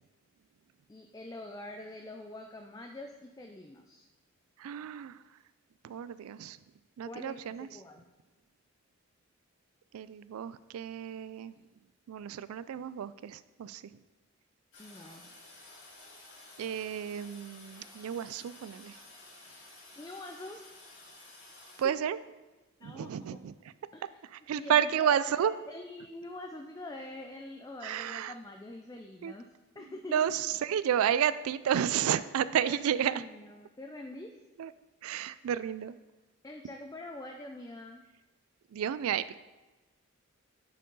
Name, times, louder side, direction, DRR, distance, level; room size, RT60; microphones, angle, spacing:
voice 1, 0.9-4.1 7.1-8.0 14.8-15.3 20.0-20.6 21.8-21.9 22.8-23.4 23.9-24.2 24.6-29.5 29.8-30.3 32.7-34.4 36.4-38.1, left 2 dB, 15° left, 3 dB, 0.3 m, -45 dB
voice 2, 4.6-5.2 5.8-6.6 7.0-7.7 9.9-11.6 12.1-13.8 16.6-19.0 21.8-22.2 22.8-23.5 24.3-25.5 27.8-28.3 29.2-29.3 30.1-33.2 34.6-34.7 35.0-35.9 38.7-39.4, right 9 dB, 85° right, 15 dB, 0.3 m, -31 dB
Toilet flush, 14.7-21.8, left 2 dB, 60° left, 1.9 m, -53 dB
9.0 x 4.6 x 3.9 m, 1.2 s
head